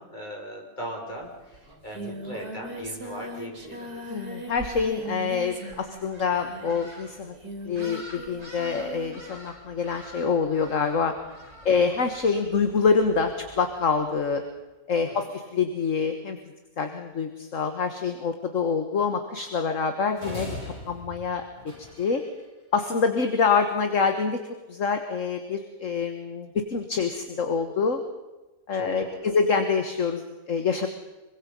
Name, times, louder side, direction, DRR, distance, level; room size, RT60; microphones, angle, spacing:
voice 1, 0.0-4.0 15.1-15.3 28.7-29.3, equal, 30° left, 0 dB, 6.0 m, -39 dB
Singing, 1.2-1.3 1.5-9.3, right 1 dB, 80° right, 4.0 m, -40 dB
voice 2, 4.1-7.4 7.6-11.1 11.7-14.4 14.9-16.4 16.8-20.6 20.9-21.4 22.0-22.2 22.7-24.4 24.7-28.0 28.7-30.9, left 5 dB, 55° left, 6 dB, 1.9 m, -26 dB
sound 1, 5.4-14.5, equal, 45° right, 7.6 m, -48 dB
sound 2, 20.2-22.4, left 1 dB, 30° right, 7.7 m, -40 dB
26.5 x 24.0 x 5.4 m, 1.1 s
omnidirectional pair, 1.6 m